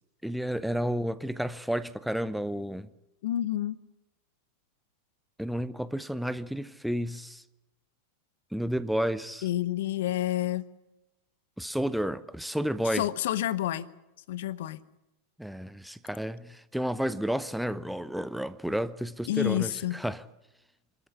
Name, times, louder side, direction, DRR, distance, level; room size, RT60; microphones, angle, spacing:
voice 1, 0.2-2.9 5.4-7.4 8.5-9.5 11.6-13.1 15.4-20.2, equal, ahead, 0.8 m, -31 dB
voice 2, 3.2-3.8 9.4-10.6 12.9-13.9 14.3-14.8 19.3-20.0, left 13 dB, 55° left, 0.9 m, -29 dB
25.0 x 13.5 x 9.8 m
figure-of-eight pair, 90°, 0 cm